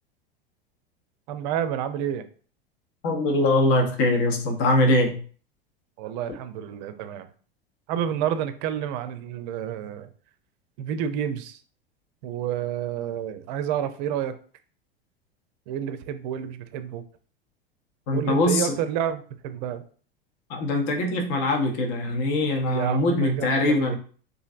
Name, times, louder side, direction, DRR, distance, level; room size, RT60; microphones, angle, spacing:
voice 1, 1.3-2.3 6.0-7.3 7.9-10.1 10.8-11.6 12.2-14.3 15.7-17.0 18.1-19.8 22.7-24.0, right 9 dB, 50° right, 10 dB, 0.5 m, -29 dB
voice 2, 3.0-5.2 18.1-18.7 20.5-24.0, left 2 dB, 45° left, 2 dB, 0.8 m, -22 dB
3.0 x 2.5 x 2.5 m, 0.43 s
figure-of-eight pair, 85°, 30 cm